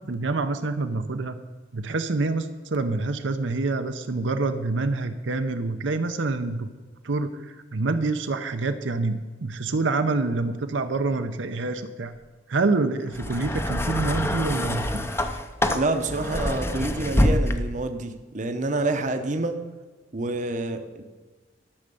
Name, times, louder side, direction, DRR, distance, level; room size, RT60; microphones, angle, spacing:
voice 1, 0.1-1.4 1.7-6.7 7.0-12.1 12.5-15.0 15.3-15.4, right 3 dB, 75° right, 7 dB, 0.7 m, -26 dB
sound 1, 13.1-17.9 18.9-19.0, left 1 dB, 15° left, 0.6 m, -26 dB
voice 2, 15.7-19.6 20.1-21.0, right 2 dB, 40° right, 7 dB, 0.8 m, -27 dB
12.0 x 6.4 x 6.9 m, 1.3 s
head